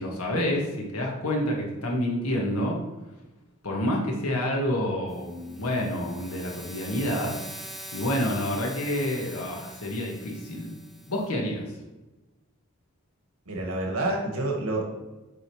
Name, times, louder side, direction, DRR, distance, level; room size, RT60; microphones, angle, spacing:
voice 1, 0.0-2.8 3.6-7.4 7.9-10.7 11.1-11.8, left 1 dB, 85° left, -1 dB, 1.7 m, -28 dB
sound 1, 5.1-11.3, right 1 dB, ahead, 0.5 m, -43 dB
voice 2, 13.4-14.8, right 2 dB, 80° right, 0 dB, 1.5 m, -28 dB
7.9 x 3.7 x 4.8 m, 1.1 s
head